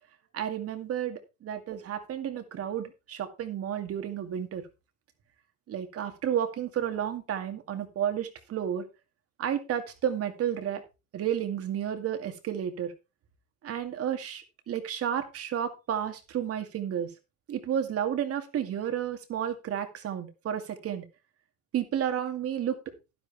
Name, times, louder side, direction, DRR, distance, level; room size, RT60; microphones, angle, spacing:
voice 1, 0.3-4.7 5.7-8.9 9.4-10.8 11.1-12.9 13.6-17.1 17.5-21.1 21.7-22.8, right 9 dB, 50° right, 7 dB, 2.2 m, -31 dB
11.5 x 10.5 x 3.5 m, 0.28 s
cardioid pair, 115°, 31 cm